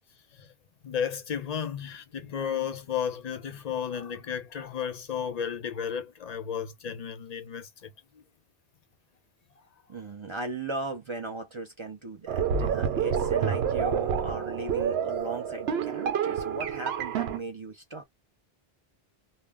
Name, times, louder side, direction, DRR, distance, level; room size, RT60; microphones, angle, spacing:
voice 1, 0.8-8.2, left 8 dB, 50° left, 0.6 m, -33 dB
voice 2, 9.9-18.0, right 2 dB, 40° right, 0.4 m, -37 dB
sound 1, 12.3-17.4, right 7 dB, 85° right, 0.8 m, -28 dB
2.2 x 2.1 x 3.3 m
omnidirectional pair, 1.0 m